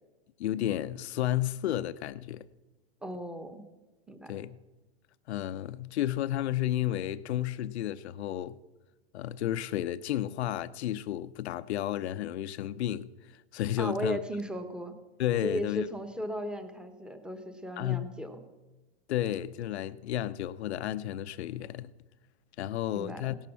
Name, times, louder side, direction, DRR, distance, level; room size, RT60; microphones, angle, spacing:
voice 1, 0.4-2.4 4.3-4.6 5.3-8.6 9.1-13.1 13.5-14.2 15.2-15.9 17.8-18.1 19.1-21.9 22.6-23.4, left 12 dB, 75° left, 0.8 m, -32 dB
voice 2, 3.0-3.6 4.1-4.3 13.8-15.0 15.4-18.4 22.9-23.4, equal, 5° right, 1.1 m, -36 dB
17.5 x 13.0 x 6.1 m
supercardioid pair, 155°, 33 cm